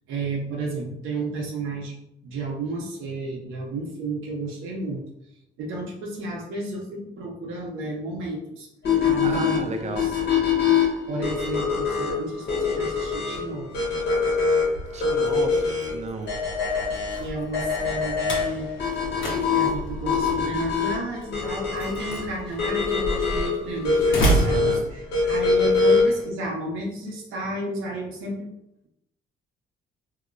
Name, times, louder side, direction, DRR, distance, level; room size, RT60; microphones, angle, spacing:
voice 1, 0.1-1.9 2.2-5.0 5.6-8.7 9.0-10.2 11.1-13.7 17.1-18.7 19.5-28.5, right 2 dB, 85° right, -2 dB, 0.9 m, -32 dB
sound 1, 8.8-26.2, left 5 dB, 55° left, 1.3 m, -24 dB
voice 2, 9.2-10.1 14.9-16.3 24.5-24.9, right 3 dB, 35° right, 4 dB, 0.6 m, -33 dB
Slam, 14.6-25.5, right 1 dB, 75° left, 1.1 m, -31 dB
2.9 x 2.8 x 2.5 m, 0.78 s
cardioid pair, 90°, 20 cm